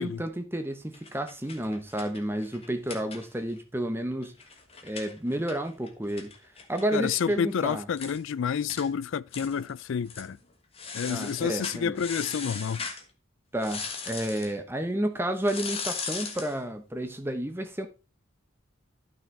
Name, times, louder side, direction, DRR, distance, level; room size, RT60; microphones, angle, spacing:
voice 1, 0.0-4.3 4.8-6.3 6.7-7.9 11.1-12.0 13.5-17.9, right 1 dB, 10° right, 0.9 m, -31 dB
window-blinds-raise-lower-flutter-turn, 0.9-3.6 3.9-4.0 4.2-7.4 7.7-7.8 8.0-8.2 8.7-8.9 9.3-9.7 10.0-10.3 10.7-13.0 13.6-14.5 15.4-16.6, left 5 dB, 25° left, 1.3 m, -38 dB
voice 2, 6.9-10.4 10.9-12.8, left 7 dB, 65° left, 0.3 m, -29 dB
12.0 x 6.2 x 3.3 m
head